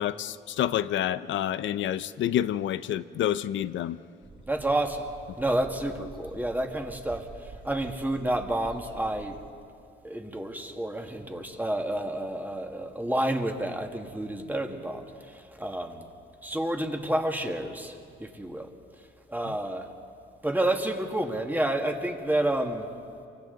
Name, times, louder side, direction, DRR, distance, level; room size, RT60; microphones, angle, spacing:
voice 1, 0.0-4.0, left 11 dB, 70° left, 0.6 m, -28 dB
sound 1, 4.2-9.5, right 4 dB, 25° right, 1.7 m, -47 dB
voice 2, 4.5-9.4 10.0-16.1 16.4-19.9 20.4-22.9, right 1 dB, 10° right, 2.0 m, -30 dB
28.5 x 24.5 x 4.0 m
cardioid pair, 90°, 20 cm